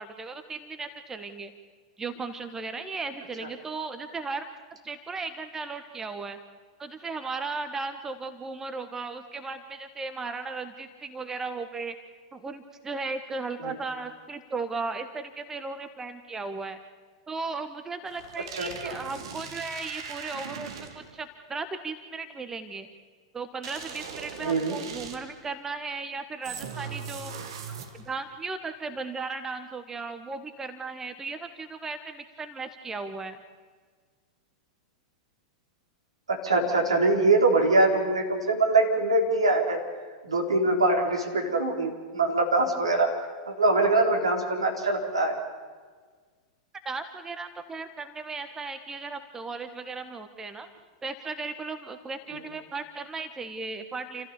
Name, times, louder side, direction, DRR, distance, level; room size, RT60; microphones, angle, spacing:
voice 1, 0.0-1.5 2.0-4.5 4.8-6.4 6.8-11.9 12.3-16.8 17.3-22.9 23.3-27.3 28.0-33.4 46.8-50.7 51.0-54.3, right 4 dB, 15° right, 9 dB, 1.4 m, -36 dB
sound 1, 18.1-21.2 23.6-25.5 26.4-28.2, right 6 dB, 60° right, 2.2 m, -40 dB
voice 2, 18.5-18.9 24.4-24.8 36.3-39.8 40.2-43.1 43.5-45.4, right 2 dB, 80° right, 1 dB, 4.1 m, -23 dB
29.0 x 14.5 x 7.1 m, 1.5 s
figure-of-eight pair, 95°, 3 cm